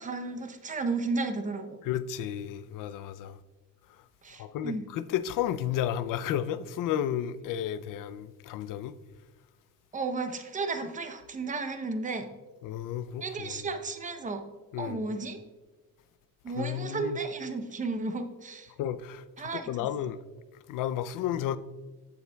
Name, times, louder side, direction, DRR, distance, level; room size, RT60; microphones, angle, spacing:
voice 1, 0.0-1.8 4.2-4.8 9.9-12.3 13.2-14.4 14.8-15.4 16.4-18.7 19.4-19.7, right 3 dB, 20° right, 0.7 m, -33 dB
voice 2, 1.8-3.4 4.4-8.9 12.6-13.7 14.7-15.1 16.6-17.2 18.8-20.2 20.7-21.6, left 10 dB, 65° left, 0.5 m, -32 dB
14.5 x 7.0 x 2.3 m
cardioid pair, 150°, 35 cm